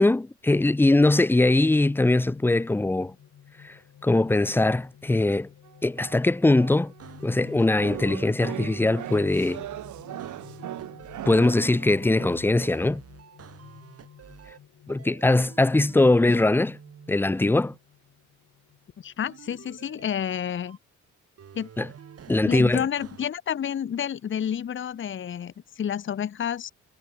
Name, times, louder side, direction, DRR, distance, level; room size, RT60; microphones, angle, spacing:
voice 1, 0.0-3.1 3.6-3.8 4.0-5.5 5.8-6.9 7.2-9.6 11.3-13.0 14.9-16.8 17.1-17.7 21.8-21.9 22.3-22.9, left 2 dB, 5° left, 0.5 m, -21 dB
sound 1, 1.6-20.7, left 9 dB, 60° left, 3.9 m, -51 dB
sound 2, 5.6-7.1 7.8-12.3, right 13 dB, 75° right, 2.4 m, -38 dB
sound 3, 7.0-8.2 8.6-11.4 11.8-14.6 14.9-17.8 19.3-20.8 21.4-23.3, right 8 dB, 50° right, 4.3 m, -48 dB
voice 2, 19.0-20.8 21.5-21.7 22.4-26.7, left 9 dB, 40° left, 0.9 m, -30 dB
cardioid pair, 90°, 30 cm